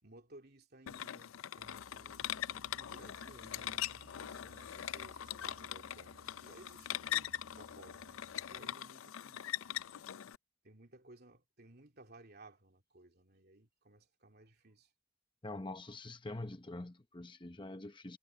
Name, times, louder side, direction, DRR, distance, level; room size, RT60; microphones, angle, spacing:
voice 1, 0.0-9.6 10.6-14.9, right 2 dB, 50° right, 3.0 m, -59 dB
sound 1, 0.9-10.3, left 11 dB, 85° left, 0.4 m, -42 dB
sound 2, 1.6-8.6, right 2 dB, 80° right, 0.9 m, -61 dB
voice 2, 15.4-18.2, left 2 dB, 25° left, 0.9 m, -45 dB
head